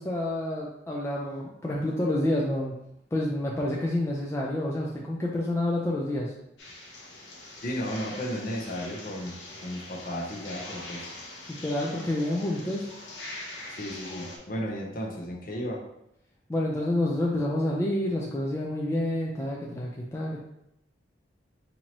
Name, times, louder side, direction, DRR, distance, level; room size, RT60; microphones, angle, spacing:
voice 1, 0.0-2.7 3.1-6.3 11.5-12.8 16.5-20.4, left 1 dB, 15° left, -3 dB, 0.4 m, -28 dB
sound 1, 6.6-14.4, left 2 dB, 75° left, 0.8 m, -43 dB
voice 2, 7.6-11.1 13.7-15.8, equal, 50° left, -1 dB, 0.8 m, -34 dB
4.4 x 2.7 x 2.9 m, 0.81 s
head